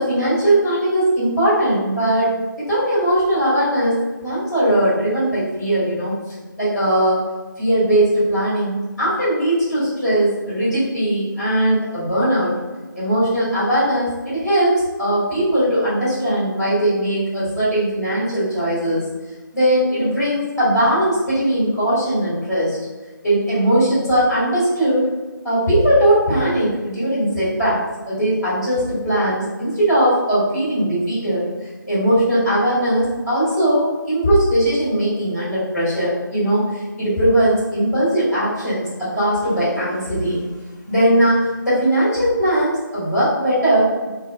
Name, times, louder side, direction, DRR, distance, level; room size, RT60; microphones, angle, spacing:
voice 1, 0.0-6.1 6.6-7.2 7.6-12.5 12.9-19.0 19.5-22.8 23.2-25.1 25.4-27.8 28.1-31.5 31.9-40.5 40.9-44.1, right 1 dB, ahead, -11 dB, 0.9 m, -19 dB
3.7 x 2.0 x 2.4 m, 1.3 s
figure-of-eight pair, 160°, 11 cm